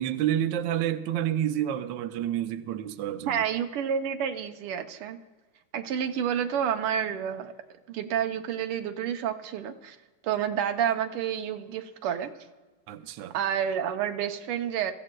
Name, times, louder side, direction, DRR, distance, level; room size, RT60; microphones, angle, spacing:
voice 1, 0.0-3.4 12.9-13.4, right 11 dB, 70° right, 1.2 m, -29 dB
voice 2, 3.3-5.2 5.7-7.5 7.9-10.0 10.2-12.4 13.3-14.9, right 9 dB, 90° right, 1.7 m, -29 dB
24.0 x 14.5 x 2.2 m
omnidirectional pair, 2.4 m